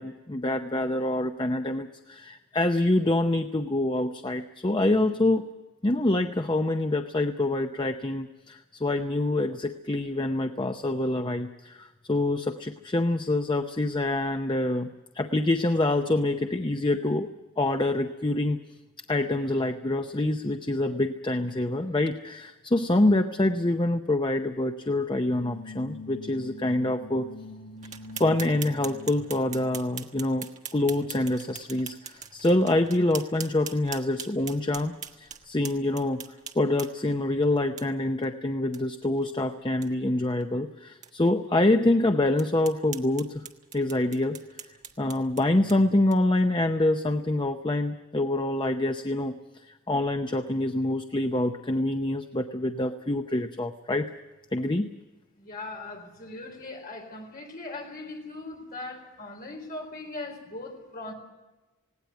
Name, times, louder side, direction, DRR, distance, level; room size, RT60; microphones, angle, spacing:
voice 1, 0.0-5.5 5.8-14.9 15.1-17.3 17.6-18.6 19.1-27.3 28.2-36.2 36.5-43.4 43.7-44.4 45.0-49.4 49.7-54.1 54.5-54.9, left 2 dB, 20° left, 7 dB, 0.7 m, -26 dB
sound 1, 25.2-30.0, left 2 dB, 65° left, 7.7 m, -44 dB
sound 2, 27.8-37.1 37.8-37.9 38.2-38.3 38.7-38.8 39.2-39.3 39.7-39.9 40.4-40.5 41.0-41.1 41.6-41.7 42.4-46.4, right 7 dB, 35° right, 1.5 m, -42 dB
voice 2, 55.3-61.1, left 2 dB, 40° left, 2 dB, 4.3 m, -39 dB
19.0 x 17.5 x 9.3 m, 1.1 s
head